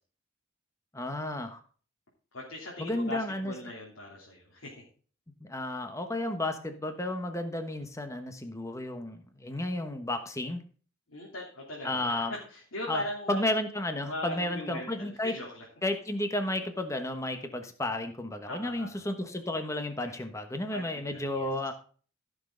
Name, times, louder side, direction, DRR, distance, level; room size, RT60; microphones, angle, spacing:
voice 1, 0.9-1.6 2.8-3.5 5.4-10.6 11.8-12.3 12.9-13.0 13.3-15.3 15.8-21.7, left 1 dB, 15° left, 7 dB, 1.1 m, -32 dB
voice 2, 2.3-4.8 11.1-13.4 14.1-15.6 18.5-19.0 20.0-20.2 20.7-21.5, left 1 dB, 90° left, -4 dB, 3.1 m, -40 dB
15.0 x 6.4 x 3.9 m, 0.42 s
head